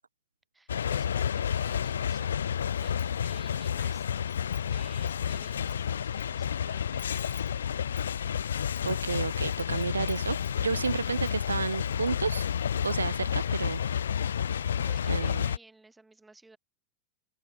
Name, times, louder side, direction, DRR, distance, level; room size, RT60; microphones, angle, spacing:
voice 1, 0.5-4.3 4.7-7.4 14.5-16.6, right 3 dB, 10° right, 7.0 m, -55 dB
sound 1, 0.7-15.6, left 8 dB, 65° left, 0.5 m, -30 dB
Wind chime, 2.8-3.6 4.0-6.3 6.5-6.6 7.0-11.0 11.2-12.0 12.3-12.4 12.7-13.1, left 18 dB, 40° left, 2.1 m, -57 dB
Motor vehicle (road) / Engine starting, 5.6-7.5 7.8-7.9 8.1-12.3, left 4 dB, 15° left, 6.3 m, -64 dB
voice 2, 8.6-12.5 12.8-13.8 15.1-15.5, right 5 dB, 75° right, 0.3 m, -31 dB
open air
figure-of-eight pair, 90°, 0 cm